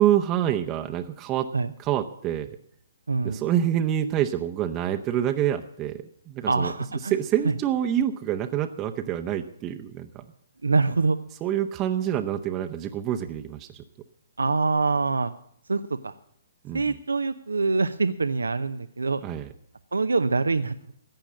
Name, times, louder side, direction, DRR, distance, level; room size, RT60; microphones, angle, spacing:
voice 1, 0.0-1.5 1.8-2.5 3.2-10.3 11.4-13.8 16.6-17.0 19.2-19.5, right 11 dB, 25° right, 5 dB, 0.8 m, -27 dB
voice 2, 3.1-3.4 6.5-7.1 10.6-11.2 14.4-15.3 15.7-16.1 16.7-19.2 19.9-20.7, right 3 dB, 85° right, 11 dB, 0.7 m, -24 dB
14.5 x 8.9 x 7.5 m, 0.67 s
hypercardioid pair, 135°, 0 cm